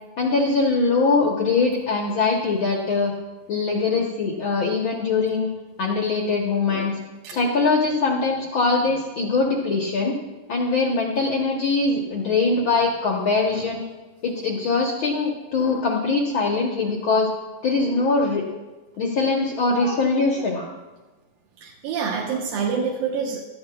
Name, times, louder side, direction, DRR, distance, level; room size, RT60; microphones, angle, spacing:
voice 1, 0.2-3.1 3.5-5.5 5.8-7.0 7.3-10.1 10.5-13.8 14.2-17.3 17.6-18.5 19.0-20.7, left 3 dB, 75° left, -1 dB, 1.1 m, -22 dB
voice 2, 21.6-23.4, right 6 dB, 85° right, -3 dB, 3.0 m, -26 dB
17.5 x 12.5 x 2.4 m, 1.2 s
omnidirectional pair, 4.0 m